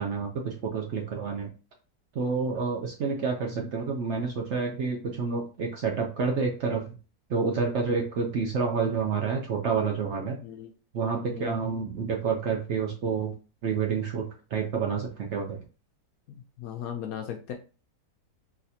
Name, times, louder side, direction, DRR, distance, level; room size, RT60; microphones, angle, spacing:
voice 1, 0.0-1.5 2.1-6.9 7.3-10.4 10.9-13.3 13.6-15.6, right 5 dB, 70° right, 0 dB, 0.6 m, -29 dB
voice 2, 16.6-17.5, left 9 dB, 70° left, 4 dB, 0.9 m, -37 dB
4.1 x 2.5 x 2.7 m, 0.34 s
omnidirectional pair, 1.9 m